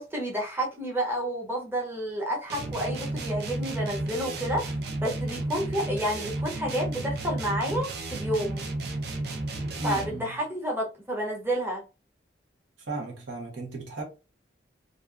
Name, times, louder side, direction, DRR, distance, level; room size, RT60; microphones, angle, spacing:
voice 1, 0.0-4.6 5.0-8.7 9.8-11.8, equal, 10° right, 0.6 m, -30 dB
sound 1, 2.5-10.3, right 2 dB, 55° right, 0.4 m, -33 dB
voice 2, 9.8-10.3 12.8-14.0, right 2 dB, 85° right, 0.9 m, -35 dB
2.6 x 2.3 x 2.3 m
head